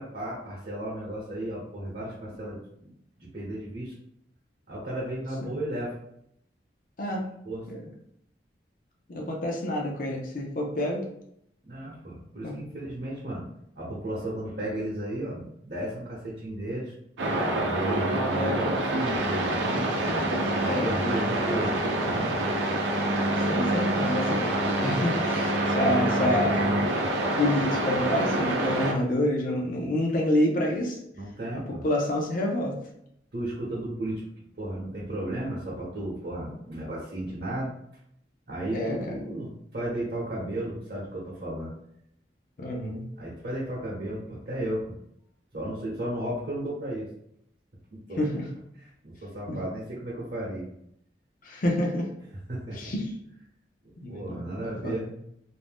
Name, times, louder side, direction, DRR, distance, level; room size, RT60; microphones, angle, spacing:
voice 1, 0.0-2.9 3.2-3.9 4.7-6.0 7.4-7.7 11.6-13.5 13.8-16.9 17.6-19.9 20.6-21.7 31.1-31.8 33.3-34.2 34.6-37.7 38.5-41.7 43.2-44.9 45.5-47.1 47.9-48.2 48.8-50.7 52.5-52.9 54.1-55.1, right 1 dB, 55° right, -6 dB, 0.8 m, -34 dB
voice 2, 9.1-11.0 12.4-12.6 18.3-18.7 20.6-21.2 23.4-24.5 24.8-26.7 27.1-31.0 31.8-32.7 38.7-38.9 42.6-43.1 48.2-48.5 49.5-49.6 51.4-52.1 52.8-53.1 54.0-54.4 54.8-55.0, left 1 dB, 45° left, 0 dB, 0.5 m, -28 dB
sound 1, 17.2-28.9, right 1 dB, 90° right, 0.5 m, -26 dB
2.6 x 2.1 x 3.4 m, 0.73 s
head